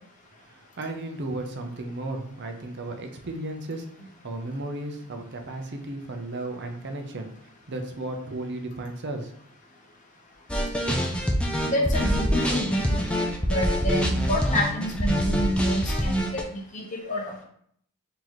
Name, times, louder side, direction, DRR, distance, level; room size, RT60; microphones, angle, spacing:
voice 1, 0.4-3.9 4.2-7.3 7.7-9.3, right 2 dB, 50° right, 4 dB, 0.6 m, -34 dB
sound 1, 10.5-16.4, equal, 5° left, 0.3 m, -25 dB
voice 2, 11.6-17.4, equal, 35° left, -1 dB, 0.8 m, -28 dB
3.9 x 2.9 x 3.0 m, 0.65 s
head